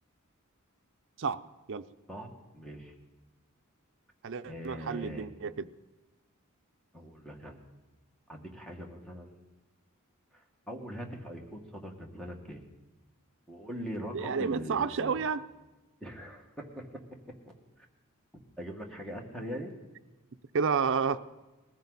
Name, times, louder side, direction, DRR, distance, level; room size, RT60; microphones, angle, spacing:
voice 1, 2.5-2.9 4.5-5.3 6.9-7.6 8.3-9.5 10.7-12.6 13.5-15.2 16.0-16.9 17.5-17.6 18.6-19.7, equal, 5° left, 1 dB, 1.8 m, -41 dB
voice 2, 4.2-5.7 14.1-15.4 20.5-21.2, right 5 dB, 60° right, 10 dB, 0.5 m, -30 dB
20.5 x 15.0 x 4.1 m, 1.1 s
head